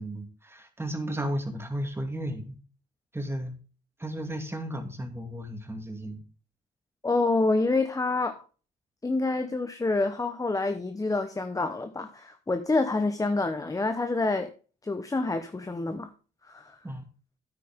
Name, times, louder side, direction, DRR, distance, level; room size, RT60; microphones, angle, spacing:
voice 1, 0.0-2.6 3.1-3.5 4.0-6.2 16.8-17.0, right 1 dB, 10° right, 2.3 m, -34 dB
voice 2, 7.0-8.4 9.0-14.5 14.8-16.1 16.4-16.8, left 3 dB, 15° left, 0.9 m, -27 dB
9.3 x 9.2 x 3.6 m
cardioid pair, 90°, 20 cm